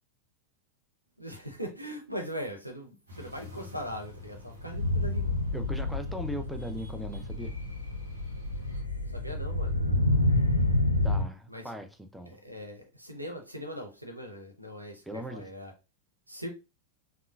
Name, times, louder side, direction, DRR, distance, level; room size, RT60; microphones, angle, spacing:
voice 1, 1.2-5.3 9.1-9.7 11.5-11.7 12.3-15.7 16.3-16.5, equal, 90° right, 0.7 m, -40 dB
sound 1, 3.1-8.8, left 2 dB, 70° right, 1.2 m, -48 dB
sound 2, 4.6-11.3, left 1 dB, 85° left, 0.4 m, -28 dB
voice 2, 5.5-7.5 11.0-12.4 15.1-15.5, equal, ahead, 0.4 m, -39 dB
3.6 x 2.3 x 2.4 m
figure-of-eight pair, 90°, 0 cm